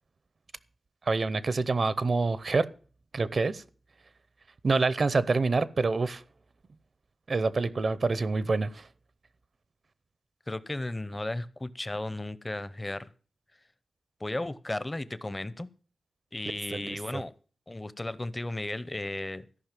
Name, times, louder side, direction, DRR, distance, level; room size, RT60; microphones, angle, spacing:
voice 1, 1.1-2.7 3.1-3.6 4.6-6.2 7.3-8.8 16.7-17.2, right 3 dB, 55° right, 0.6 m, -26 dB
voice 2, 10.5-13.1 14.2-15.7 16.3-17.3 17.7-19.4, left 2 dB, 20° left, 0.7 m, -34 dB
13.5 x 5.6 x 7.3 m
wide cardioid pair, 95°, 0 cm